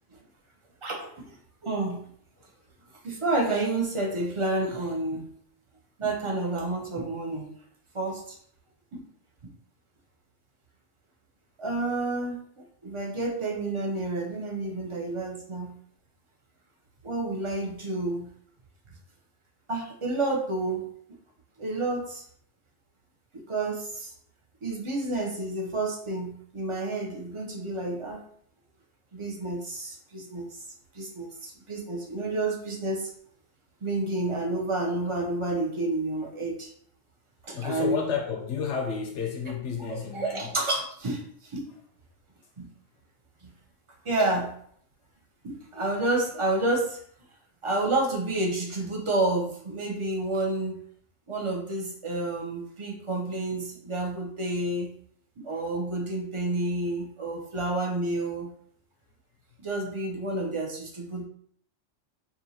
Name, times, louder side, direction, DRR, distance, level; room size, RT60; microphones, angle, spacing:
voice 1, 0.8-1.4 1.6-2.0 3.0-5.3 6.0-7.5 7.9-8.4 8.9-9.0 9.4-9.5 11.6-15.7 17.0-18.3 19.7-20.9 21.6-22.2 23.3-24.1 24.6-28.2 29.1-30.6 30.9-33.1 33.8-36.7 37.4-38.0 39.9-41.7 42.6-42.7 43.4-43.5 44.0-44.5 45.4-47.0 47.6-50.8 51.3-54.9 55.4-58.5 59.6-61.2, right 2 dB, 30° right, 0 dB, 0.6 m, -30 dB
voice 2, 37.5-40.5, left 6 dB, 70° left, 4 dB, 0.8 m, -31 dB
4.7 x 2.7 x 2.7 m, 0.62 s
omnidirectional pair, 1.3 m